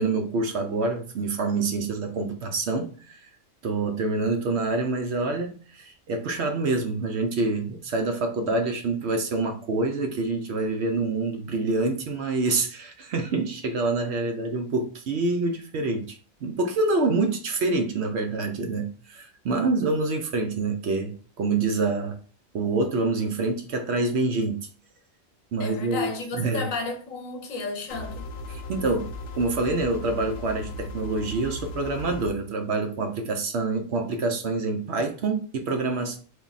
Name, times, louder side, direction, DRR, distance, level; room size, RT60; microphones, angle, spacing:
voice 1, 0.0-3.3 3.6-16.2 16.4-22.2 22.5-24.6 25.5-26.7 28.5-29.1 29.4-36.2, right 3 dB, 60° right, 0.8 m, -26 dB
voice 2, 25.6-28.3, left 3 dB, 80° left, 1.2 m, -33 dB
sound 1, 27.9-32.3, left 2 dB, 65° left, 1.0 m, -37 dB
3.5 x 2.6 x 3.9 m
omnidirectional pair, 1.4 m